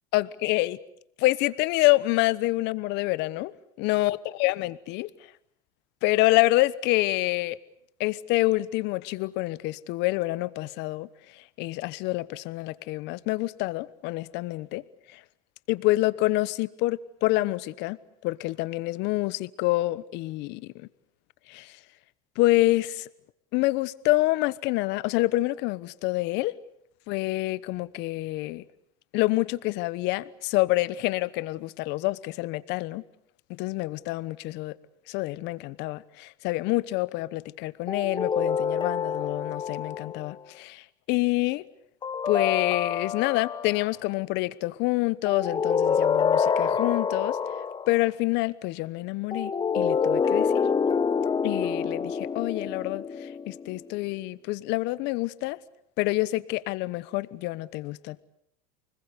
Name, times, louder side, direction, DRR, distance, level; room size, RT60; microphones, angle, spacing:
voice 1, 0.1-0.8 1.2-3.5 3.8-5.1 6.0-7.6 8.0-11.1 11.3-14.8 15.1-15.2 15.7-18.0 18.2-20.9 21.5-21.8 22.4-23.1 23.5-26.5 27.1-28.6 29.1-33.0 33.5-34.7 35.1-41.7 42.3-47.4 47.9-50.6 51.4-55.6 56.0-58.2, left 19 dB, 60° left, 1.1 m, -27 dB
sound 1, 37.9-40.3 42.0-43.9 45.2-48.0 49.3-53.8, left 6 dB, 25° left, 1.0 m, -27 dB
29.5 x 20.5 x 8.3 m
supercardioid pair, 100°, 20 cm